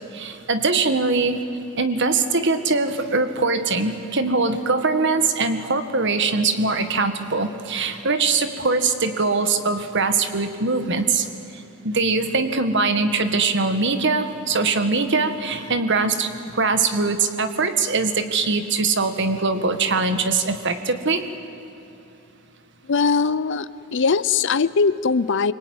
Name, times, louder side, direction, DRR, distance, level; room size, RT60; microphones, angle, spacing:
voice 1, 0.1-1.4 1.8-11.3 11.8-21.3, right 4 dB, 55° right, 9 dB, 1.7 m, -22 dB
voice 2, 22.9-25.5, left 5 dB, 55° left, 16 dB, 0.5 m, -20 dB
25.0 x 23.5 x 9.6 m, 3.0 s
head